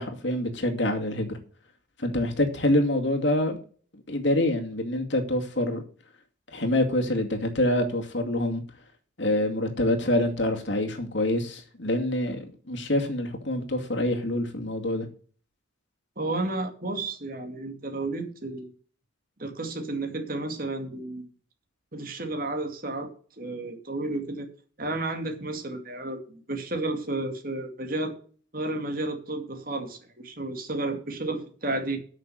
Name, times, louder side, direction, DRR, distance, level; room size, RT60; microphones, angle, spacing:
voice 1, 0.0-1.4 2.0-3.6 4.1-5.8 6.5-8.6 9.2-15.1, left 1 dB, 65° left, 2.3 m, -26 dB
voice 2, 16.2-18.7 19.4-21.3 21.9-23.1 23.4-24.5 24.8-28.1 28.5-32.0, right 2 dB, 45° right, 2.3 m, -32 dB
9.0 x 6.5 x 7.8 m
head